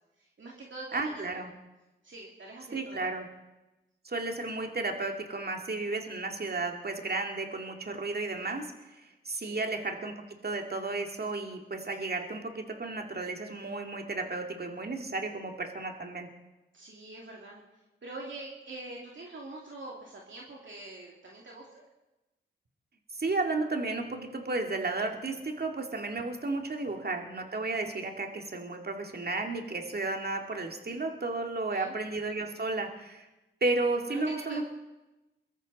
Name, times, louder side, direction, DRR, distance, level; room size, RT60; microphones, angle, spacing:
voice 1, 0.2-1.4 2.0-3.1 9.3-9.7 16.7-17.6 18.0-21.8 31.7-31.9 34.1-34.7, right 2 dB, 65° right, -2 dB, 2.5 m, -45 dB
voice 2, 0.9-1.5 2.7-3.3 4.0-8.7 9.3-10.1 10.4-16.3 23.1-33.3 33.6-34.6, right 3 dB, 50° right, 3 dB, 2.1 m, -33 dB
22.5 x 13.5 x 4.1 m, 1.0 s
cardioid pair, 50°, 21 cm